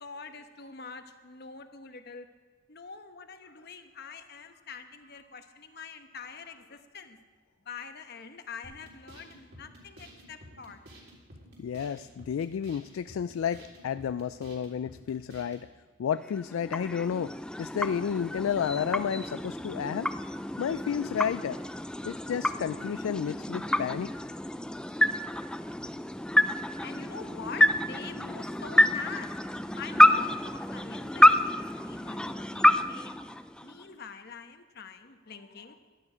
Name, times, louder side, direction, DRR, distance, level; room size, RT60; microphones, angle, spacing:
voice 1, 0.0-2.3 2.7-7.2 7.7-10.8 26.8-33.2 33.6-35.8, left 5 dB, 55° left, 7 dB, 1.1 m, -45 dB
sound 1, 8.6-15.7, equal, 55° right, 3.6 m, -52 dB
voice 2, 11.6-15.7 16.0-17.3 17.6-20.1 20.6-21.6 22.0-24.1, left 8 dB, 80° left, 13 dB, 0.3 m, -31 dB
sound 2, 16.2-33.9, left 1 dB, 5° left, 0.3 m, -27 dB
16.0 x 12.5 x 5.0 m, 1.4 s
head